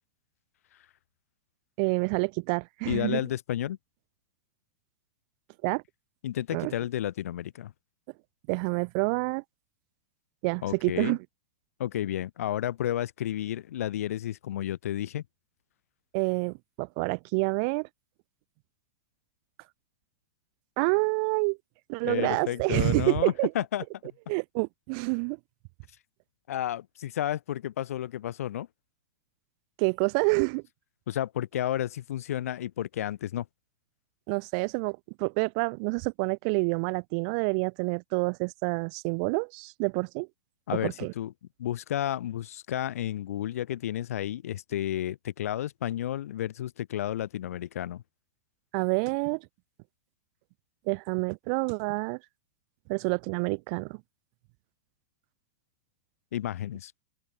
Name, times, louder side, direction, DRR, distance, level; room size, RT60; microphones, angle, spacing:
voice 1, 1.8-3.2 5.6-5.8 6.5-6.7 8.5-9.4 10.4-11.2 16.1-17.9 20.8-21.6 21.9-23.5 24.3-25.4 29.8-30.6 34.3-40.3 40.8-41.1 48.7-49.4 50.9-52.2 52.9-54.0, right 36 dB, 35° right, 0.5 m, -28 dB
voice 2, 2.9-3.8 6.2-7.7 10.6-11.2 11.8-15.2 22.0-24.1 26.5-28.7 31.1-33.5 40.7-41.3 41.6-48.0 56.3-56.9, left 12 dB, 85° left, 0.4 m, -31 dB
open air
supercardioid pair, 165°, 8 cm